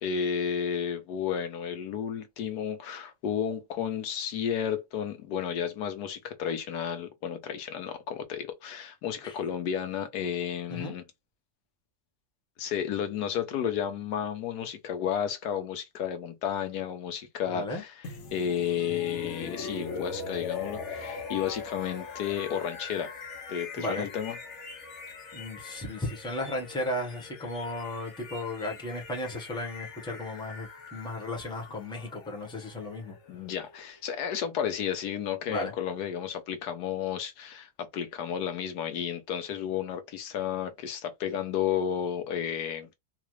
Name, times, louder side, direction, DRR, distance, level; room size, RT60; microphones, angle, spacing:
voice 1, 0.0-11.0 12.6-17.9 18.3-23.1 23.5-24.4 33.3-42.9, left 8 dB, 80° left, 1.3 m, -32 dB
voice 2, 17.5-17.8 23.8-24.1 25.3-33.2 35.5-35.7, left 1 dB, 5° left, 1.0 m, -35 dB
sound 1, 18.0-33.9, left 4 dB, 55° left, 1.0 m, -42 dB
4.0 x 2.4 x 3.1 m
omnidirectional pair, 1.7 m